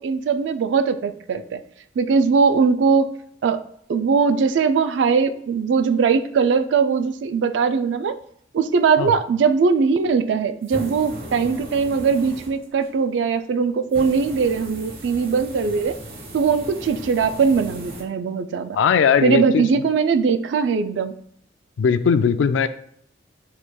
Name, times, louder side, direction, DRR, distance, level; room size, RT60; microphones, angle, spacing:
voice 1, 0.0-1.6 2.0-3.1 3.4-3.6 3.9-8.1 8.5-16.0 16.3-18.8 19.2-21.1, right 5 dB, 75° right, 10 dB, 0.3 m, -20 dB
sound 1, 10.6-13.0 13.9-18.0, right 1 dB, 55° right, 1.0 m, -37 dB
voice 2, 18.7-19.7 21.8-22.7, left 6 dB, 85° left, 12 dB, 0.3 m, -18 dB
7.2 x 3.1 x 2.2 m, 0.68 s
head